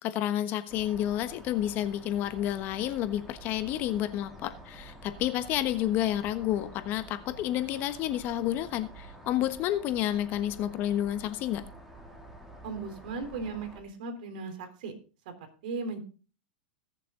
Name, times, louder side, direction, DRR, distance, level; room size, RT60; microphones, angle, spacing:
voice 1, 0.0-11.6, left 12 dB, 40° left, 1.2 m, -30 dB
sound 1, 0.7-13.8, right 1 dB, 5° right, 2.6 m, -49 dB
voice 2, 12.6-14.9 15.3-15.4 15.6-16.0, right 4 dB, 65° right, 3.6 m, -37 dB
19.5 x 6.8 x 3.8 m
hypercardioid pair, 130°, 5 cm